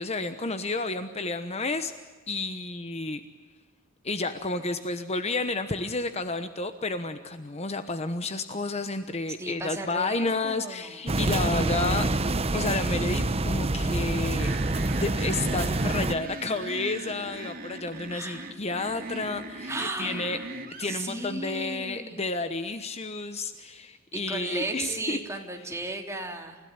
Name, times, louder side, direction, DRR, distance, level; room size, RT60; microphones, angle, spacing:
voice 1, 0.0-1.9 2.3-3.2 4.0-12.1 12.5-14.6 15.0-20.4 20.8-25.2, left 3 dB, 30° left, 9 dB, 1.1 m, -31 dB
voice 2, 9.4-11.1 18.1-18.5 19.7-20.5 20.8-22.3 24.1-26.6, right 2 dB, 15° right, 2 dB, 3.1 m, -35 dB
sound 1, 11.1-16.1, right 2 dB, 30° right, 0.9 m, -26 dB
sound 2, 14.4-21.0, right 2 dB, 45° right, 2.7 m, -39 dB
29.5 x 16.5 x 9.7 m, 1.4 s
head